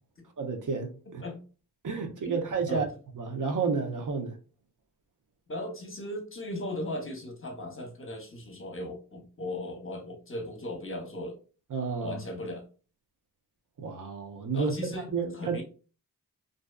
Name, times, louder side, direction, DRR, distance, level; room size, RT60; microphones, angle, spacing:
voice 1, 0.4-1.2 1.8-2.9 3.1-4.4 11.7-12.2 13.8-14.7 15.1-15.6, right 5 dB, 50° right, 0.7 m, -31 dB
voice 2, 5.5-11.4 12.0-12.6 14.5-15.1 15.3-15.6, left 1 dB, 30° left, 0.9 m, -37 dB
2.6 x 2.2 x 2.2 m
cardioid pair, 45°, 39 cm